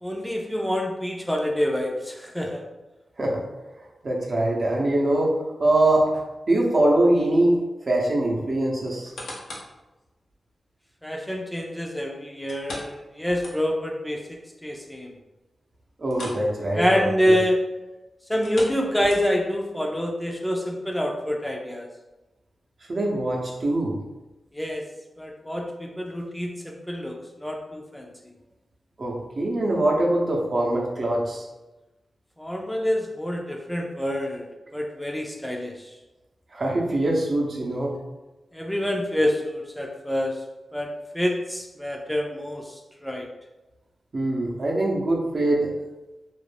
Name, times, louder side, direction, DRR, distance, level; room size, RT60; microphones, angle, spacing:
voice 1, 0.0-2.6 11.0-15.1 16.7-17.6 18.3-21.9 24.5-24.8 25.2-28.1 32.4-34.5 34.7-35.9 38.5-40.4 40.7-43.3, equal, 5° left, 0 dB, 0.4 m, -27 dB
voice 2, 4.0-6.1 6.5-7.6 7.9-9.1 16.0-17.4 22.9-23.9 29.0-31.4 36.5-38.0 44.1-45.7, right 1 dB, 55° right, -2 dB, 0.6 m, -23 dB
sound 1, 8.9-9.8 10.3-10.4 12.5-13.9 14.3-14.4 14.8-14.9 16.0-16.5 16.8-17.0 18.3-19.5 20.2-20.3, left 1 dB, 90° left, 0.6 m, -39 dB
2.4 x 2.1 x 3.2 m, 1.1 s
cardioid pair, 60°, 0 cm